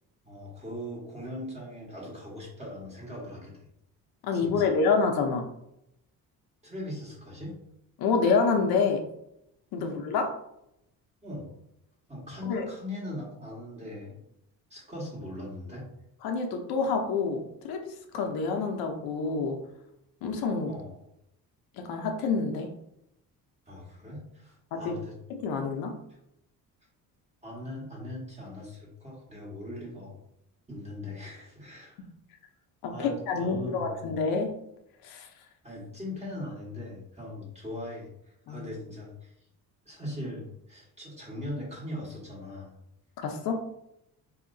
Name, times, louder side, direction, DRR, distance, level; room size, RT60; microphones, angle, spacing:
voice 1, 0.2-3.7 4.3-4.7 6.6-7.5 9.8-9.9 11.2-11.5 12.1-14.2 14.7-15.9 20.7-20.9 23.7-25.2 27.4-30.1 30.7-32.0 32.9-34.1 35.6-38.1 38.5-39.3 39.8-42.7, left 1 dB, 20° right, -4 dB, 1.4 m, -40 dB
voice 2, 4.2-5.5 8.0-9.0 9.7-10.3 12.5-12.6 16.2-19.6 20.2-20.7 21.8-22.7 24.7-24.9 25.3-26.0 32.8-34.5 35.0-35.3 38.5-38.6 43.2-43.6, left 4 dB, 85° left, 4 dB, 0.7 m, -27 dB
4.2 x 2.8 x 2.6 m, 0.79 s
cardioid pair, 130°, 36 cm